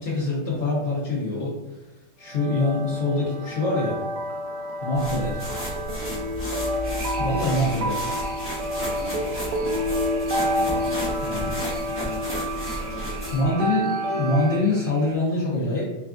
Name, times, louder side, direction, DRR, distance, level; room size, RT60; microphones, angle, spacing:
voice 1, 0.0-1.6 2.2-4.0 4.8-5.4 7.2-8.0 11.2-11.5 13.3-15.8, left 2 dB, 60° left, -6 dB, 0.7 m, -24 dB
sound 1, 2.3-14.6, equal, 90° right, 0.7 m, -29 dB
sound 2, 4.9-13.5, equal, 15° left, 0.4 m, -33 dB
voice 2, 5.8-6.2 8.9-9.9 10.5-11.4 11.7-12.5 12.8-13.5, left 3 dB, 80° left, -2 dB, 1.6 m, -42 dB
sound 3, 6.8-15.1, right 3 dB, 60° right, 1.3 m, -45 dB
3.7 x 3.4 x 2.4 m, 1.0 s
omnidirectional pair, 2.0 m